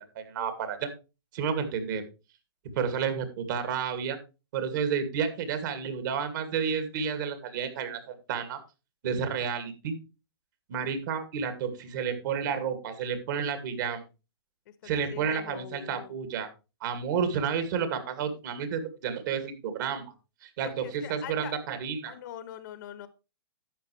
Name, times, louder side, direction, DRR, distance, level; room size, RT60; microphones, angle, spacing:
voice 1, 0.2-0.9 1.3-2.0 2.8-4.2 4.5-8.6 9.0-10.0 10.7-14.0 14.8-16.5 16.8-20.0 20.4-22.1, right 7 dB, 50° right, 9 dB, 2.3 m, -31 dB
voice 2, 14.8-16.1 17.3-17.5 20.6-21.5 22.1-23.1, left 11 dB, 50° left, 14 dB, 1.2 m, -43 dB
11.5 x 8.2 x 3.2 m, 0.29 s
hypercardioid pair, 155°, 13 cm